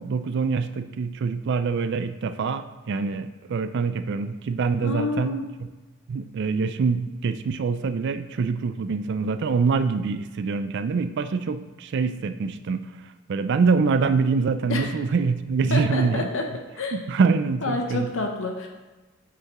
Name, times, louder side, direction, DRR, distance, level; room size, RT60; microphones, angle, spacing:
voice 1, 0.0-5.4 6.1-16.3 16.9-18.1, right 4 dB, 55° right, 11 dB, 0.4 m, -25 dB
voice 2, 4.8-5.5 14.7-14.9 15.7-16.5 16.8-17.0 17.6-18.7, left 3 dB, 65° left, 3 dB, 0.7 m, -28 dB
8.4 x 5.8 x 3.0 m, 1.2 s
head